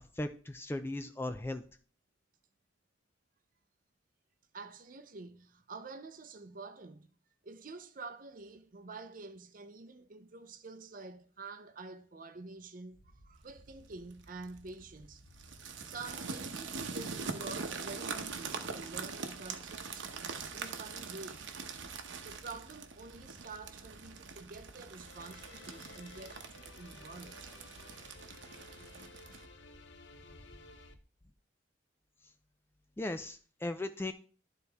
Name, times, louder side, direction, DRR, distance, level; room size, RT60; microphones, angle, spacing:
voice 1, 0.2-1.6 33.0-34.1, left 2 dB, 10° left, 0.3 m, -37 dB
voice 2, 4.5-7.1 7.4-15.2 15.8-20.1 20.5-21.4 22.2-27.5, right 3 dB, 45° right, 0.6 m, -48 dB
sound 1, 12.9-31.0, left 1 dB, 30° left, 1.0 m, -59 dB
sound 2, 14.1-14.4 15.3-29.5, right 5 dB, 70° right, 0.8 m, -43 dB
sound 3, 25.0-30.9, left 4 dB, 65° left, 0.7 m, -56 dB
12.0 x 4.1 x 3.5 m
head